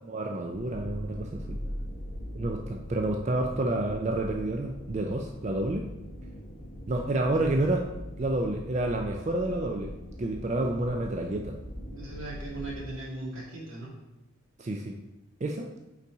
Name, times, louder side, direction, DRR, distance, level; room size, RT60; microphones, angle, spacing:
voice 1, 0.0-1.6 2.3-5.9 6.9-7.9 8.2-9.9 10.2-11.6 14.6-15.0 15.4-15.7, right 2 dB, 35° right, 2 dB, 0.4 m, -29 dB
sound 1, 0.5-12.9, equal, 35° left, 1.1 m, -41 dB
voice 2, 11.9-13.9, right 2 dB, 85° right, -4 dB, 2.0 m, -38 dB
5.5 x 4.0 x 4.6 m, 0.97 s
head